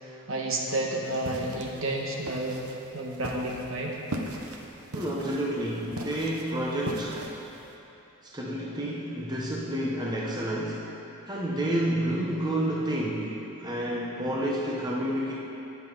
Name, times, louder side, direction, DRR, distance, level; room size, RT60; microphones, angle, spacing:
voice 1, 0.3-2.6 2.9-4.0, right 1 dB, 65° right, -1 dB, 1.5 m, -30 dB
sound 1, 1.0-7.7, right 1 dB, 80° right, 1.1 m, -39 dB
voice 2, 4.9-7.2 8.2-10.8 11.3-13.3 13.6-15.3, right 1 dB, 20° right, -4 dB, 1.1 m, -29 dB
20.5 x 7.2 x 4.0 m, 2.9 s
head